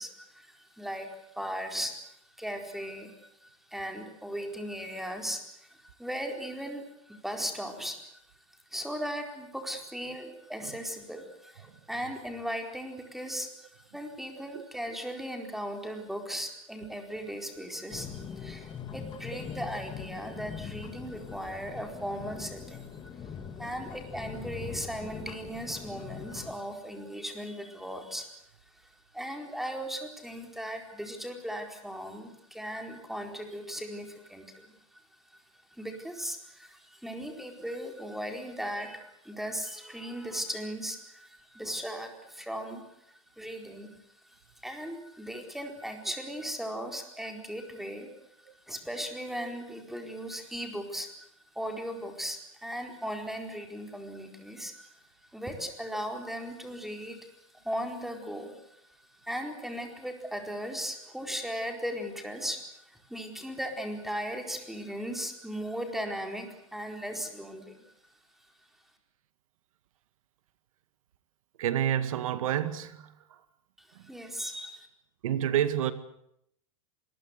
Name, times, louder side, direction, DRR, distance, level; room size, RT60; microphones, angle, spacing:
voice 1, 0.0-3.1 3.4-8.0 8.7-23.1 23.6-28.3 29.1-34.7 35.7-42.8 43.1-44.0 44.3-48.1 48.7-51.3 51.5-54.9 55.3-58.8 59.2-67.8 74.1-74.9, equal, ahead, 4 dB, 4.5 m, -37 dB
sound 1, 17.9-26.5, left 7 dB, 25° left, 2.0 m, -42 dB
voice 2, 71.6-73.1 75.2-75.9, right 10 dB, 85° right, 12 dB, 2.1 m, -28 dB
25.5 x 21.0 x 8.2 m, 0.76 s
supercardioid pair, 135°, 17 cm